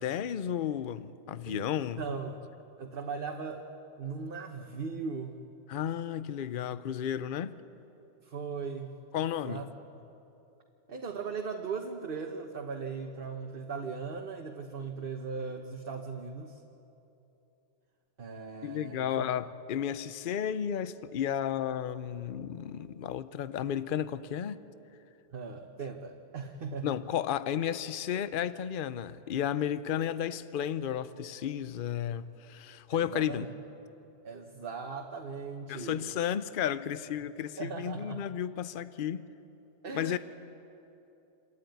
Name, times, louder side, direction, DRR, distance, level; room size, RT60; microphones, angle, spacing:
voice 1, 0.0-2.0 5.7-7.5 9.1-9.6 18.6-24.6 26.8-33.5 35.7-39.3 39.9-40.2, left 9 dB, 55° left, 0.8 m, -33 dB
voice 2, 2.0-2.3 2.8-3.7 4.0-5.4 8.2-8.9 9.4-9.7 10.9-16.6 18.2-19.3 25.3-26.9 32.9-33.5 34.2-36.1 37.6-38.3 39.8-40.2, right 5 dB, 50° right, 1.2 m, -38 dB
27.5 x 13.0 x 9.4 m
omnidirectional pair, 1.2 m